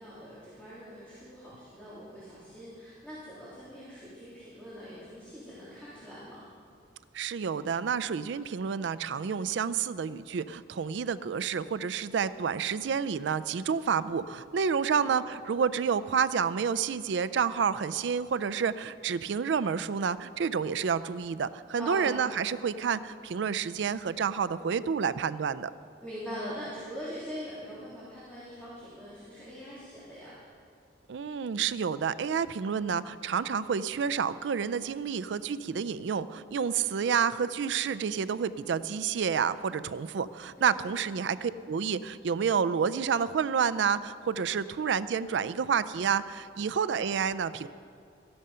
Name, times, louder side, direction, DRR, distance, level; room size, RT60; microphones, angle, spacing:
voice 1, 0.0-6.4 14.8-15.2 21.8-22.1 26.0-30.3 40.6-41.0, equal, 5° left, -10 dB, 3.1 m, -42 dB
voice 2, 7.1-25.7 31.1-47.7, right 6 dB, 70° right, 15 dB, 0.4 m, -29 dB
14.0 x 11.0 x 5.6 m, 2.5 s
head